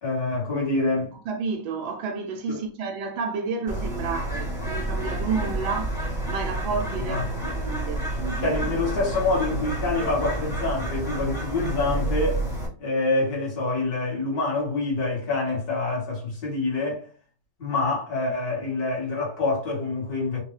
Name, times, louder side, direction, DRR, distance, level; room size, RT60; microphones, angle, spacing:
voice 1, 0.0-1.1 2.5-2.6 7.1-7.5 8.4-12.4 12.8-17.0 17.6-20.4, left 3 dB, 50° left, 1.9 m, -26 dB
voice 2, 1.3-6.0 6.3-8.5, right 5 dB, 75° right, 1.4 m, -31 dB
Bird, 3.7-12.7, right 1 dB, 5° right, 0.5 m, -29 dB
4.4 x 2.2 x 3.2 m
omnidirectional pair, 2.3 m